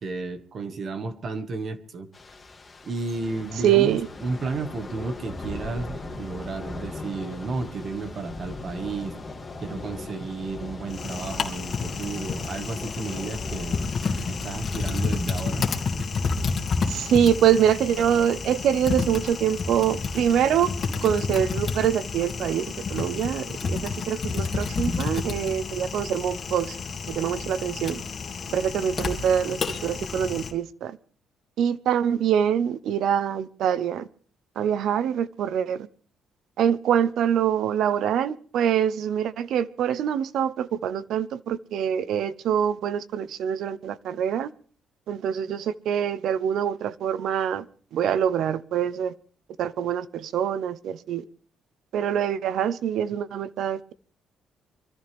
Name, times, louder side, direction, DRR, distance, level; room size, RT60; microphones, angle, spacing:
voice 1, 0.0-2.1 2.8-9.1 9.6-13.9 14.3-15.7 29.8-29.9, right 3 dB, 45° right, 1.7 m, -33 dB
Thunder / Rain, 2.1-15.1, left 2 dB, 20° left, 2.5 m, -39 dB
voice 2, 3.6-4.1 16.9-20.7 21.0-22.6 22.9-26.7 27.1-28.0 28.5-31.0 31.6-34.1 34.6-35.9 36.6-44.5 45.1-47.7 47.9-49.1 49.6-51.2 51.9-53.9, right 9 dB, 70° right, 0.8 m, -24 dB
Typing, 10.9-30.5, left 4 dB, 40° left, 2.4 m, -30 dB
25.0 x 14.0 x 3.5 m
cardioid pair, 135°, 0 cm